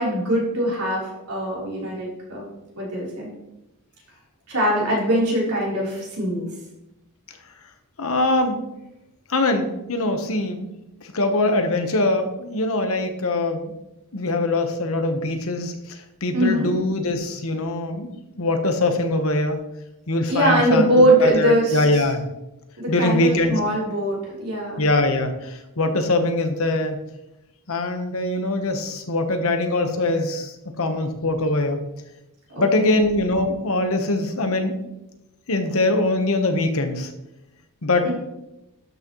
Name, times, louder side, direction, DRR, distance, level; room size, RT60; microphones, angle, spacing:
voice 1, 0.0-2.4 2.8-3.3 4.5-6.5 16.3-16.7 20.3-22.1 22.8-24.8 32.5-33.0 38.0-38.1, right 1 dB, 85° right, -5 dB, 3.5 m, -22 dB
voice 2, 8.0-8.6 9.3-10.7 11.0-13.7 14.1-18.1 18.4-19.6 20.1-20.9 21.2-22.2 22.9-23.6 24.8-27.0 27.7-31.9 32.6-34.8 35.5-37.1 37.8-38.1, left 2 dB, 65° left, 6 dB, 1.0 m, -22 dB
12.0 x 6.1 x 3.0 m, 0.91 s
head